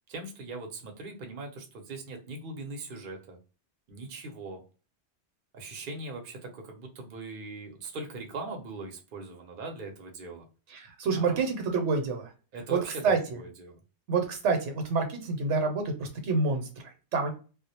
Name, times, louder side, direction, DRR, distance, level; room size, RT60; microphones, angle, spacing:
voice 1, 0.1-3.4 3.9-4.6 5.5-10.5 11.1-11.4 12.5-13.8, right 3 dB, 55° right, 3 dB, 0.7 m, -40 dB
voice 2, 10.7-12.3 12.7-12.8 13.0-13.4 14.1-17.3, right 4 dB, 75° right, 5 dB, 1.0 m, -28 dB
2.3 x 2.0 x 2.7 m, 0.35 s
omnidirectional pair, 1.2 m